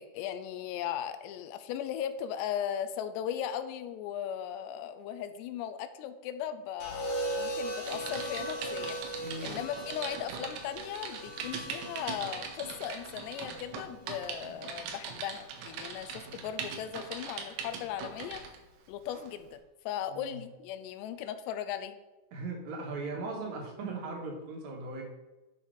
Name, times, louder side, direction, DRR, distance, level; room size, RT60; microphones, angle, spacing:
voice 1, 0.0-18.4 18.9-19.6 19.9-22.0, left 9 dB, 85° left, 11 dB, 2.8 m, -37 dB
sound 1, 6.8-15.0 16.2-16.6, right 1 dB, 55° left, 0.7 m, -39 dB
Typing, 7.9-18.6 19.1-19.3, right 6 dB, 80° right, 3.2 m, -41 dB
voice 2, 9.2-9.6 20.1-20.4 22.3-25.0, right 3 dB, 55° right, 0 dB, 2.5 m, -38 dB
10.5 x 5.7 x 4.8 m, 1.1 s
omnidirectional pair, 4.9 m